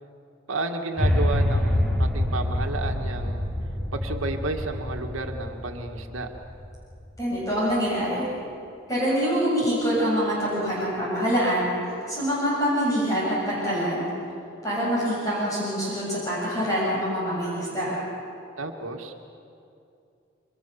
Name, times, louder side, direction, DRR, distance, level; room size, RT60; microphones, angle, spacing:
voice 1, 0.5-3.5 3.9-6.3 18.6-19.1, right 2 dB, 90° right, 3 dB, 1.8 m, -31 dB
sound 1, 1.0-7.2, left 1 dB, ahead, 3.0 m, -26 dB
voice 2, 7.2-8.3 8.9-11.7 12.1-14.1 14.6-18.0, equal, 15° left, -7 dB, 7.7 m, -25 dB
28.0 x 24.5 x 7.0 m, 2.6 s
head